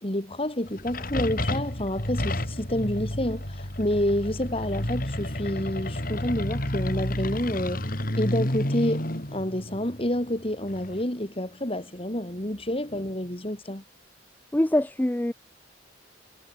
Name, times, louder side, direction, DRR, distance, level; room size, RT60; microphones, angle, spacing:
voice 1, 0.0-7.9 8.2-9.1 9.3-13.8, left 1 dB, 30° left, 3.3 m, -29 dB
sound 1, 0.7-11.0, left 1 dB, 45° left, 4.8 m, -31 dB
voice 2, 14.5-15.3, left 1 dB, 10° left, 0.5 m, -23 dB
head